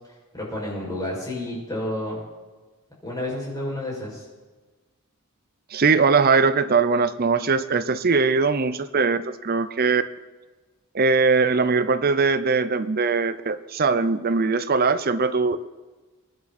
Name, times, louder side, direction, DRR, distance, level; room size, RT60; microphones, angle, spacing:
voice 1, 0.3-2.2 3.0-4.2, left 1 dB, 15° left, -5 dB, 6.3 m, -30 dB
voice 2, 5.7-10.0 10.9-15.6, right 4 dB, 45° right, 13 dB, 0.6 m, -21 dB
23.5 x 11.0 x 4.3 m, 1.2 s
head